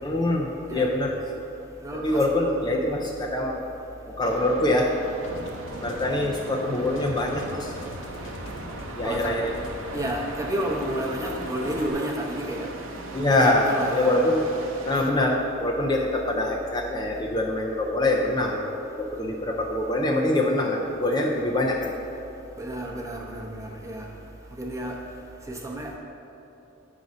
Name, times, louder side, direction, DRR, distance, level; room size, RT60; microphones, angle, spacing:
voice 1, 0.0-1.2 2.0-3.6 4.1-4.9 5.8-7.7 9.0-9.6 13.1-14.4 14.9-21.9, left 1 dB, 20° left, -1 dB, 0.5 m, -24 dB
voice 2, 1.8-2.2 2.6-2.8 5.3-5.4 9.0-9.3 9.9-12.7 13.3-14.4 22.6-24.1 24.5-25.0 25.5-26.0, right 1 dB, 15° right, -1 dB, 0.8 m, -31 dB
sound 1, 4.2-15.1, right 2 dB, 85° right, 0.7 m, -39 dB
sound 2, 5.2-11.9, left 1 dB, 70° left, 0.9 m, -41 dB
8.2 x 4.0 x 6.0 m, 2.9 s
head